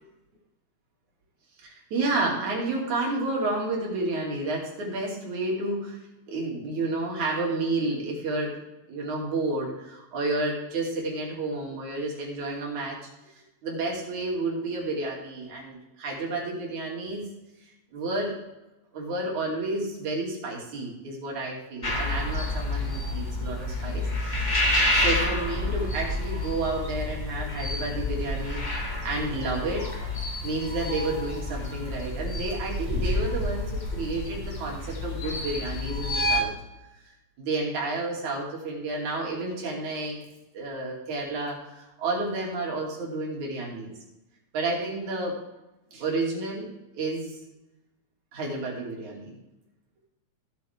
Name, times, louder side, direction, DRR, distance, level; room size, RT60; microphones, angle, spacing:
voice 1, 1.6-6.0 6.3-8.6 8.9-13.0 13.4-17.3 17.9-18.4 18.9-24.1 24.9-28.6 29.0-29.9 30.4-36.5 37.4-40.2 40.5-43.9 44.5-45.4 45.9-47.4 48.3-49.4, right 2 dB, 80° right, -2 dB, 3.9 m, -30 dB
sound 1, 21.8-36.4, left 1 dB, 30° left, 0.8 m, -29 dB
16.0 x 8.2 x 3.5 m, 0.96 s
omnidirectional pair, 3.3 m